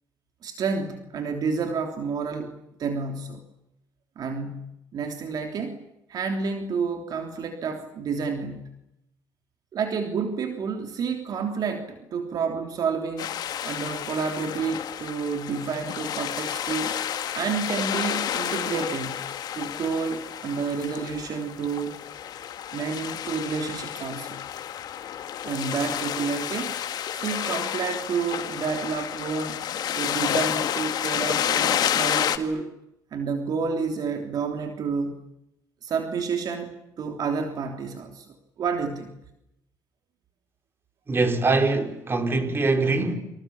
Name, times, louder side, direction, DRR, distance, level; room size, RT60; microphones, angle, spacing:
voice 1, 0.4-3.4 4.1-5.8 6.1-8.7 9.7-13.3 13.6-17.0 17.3-19.2 19.5-22.0 22.7-24.4 25.4-26.7 27.1-29.6 29.9-32.7 33.1-35.2 35.8-38.3 38.6-39.1, right 5 dB, 60° right, 3.3 m, -30 dB
sound 1, 13.2-32.4, left 10 dB, 65° left, 2.1 m, -30 dB
voice 2, 41.1-43.1, right 3 dB, 30° right, 5.0 m, -23 dB
30.0 x 26.5 x 7.4 m
cardioid pair, 90°, 8 cm